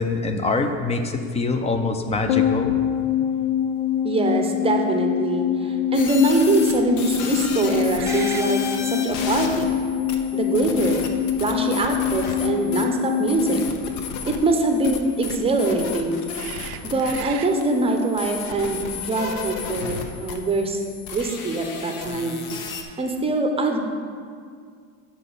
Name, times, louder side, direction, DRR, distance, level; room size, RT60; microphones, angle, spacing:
voice 1, 0.0-2.8, left 3 dB, 15° left, 6 dB, 0.6 m, -24 dB
sound 1, 2.3-14.8 15.1-15.2, left 9 dB, 75° left, 0.6 m, -25 dB
sound 2, 2.7-2.8 3.3-3.4 7.9-8.5 9.7-9.8 10.8-11.6 13.6-13.8 16.3-17.5, right 13 dB, 60° right, 0.5 m, -38 dB
voice 2, 4.0-9.7 10.3-11.1 11.4-13.6 14.3-16.2 16.5-20.8 21.1-22.4 23.0-23.8, right 2 dB, 15° right, 4 dB, 0.8 m, -23 dB
sound 3, 5.9-22.8, left 5 dB, 55° left, 0.9 m, -34 dB
6.0 x 5.6 x 6.9 m, 2.1 s
supercardioid pair, 120°, 39 cm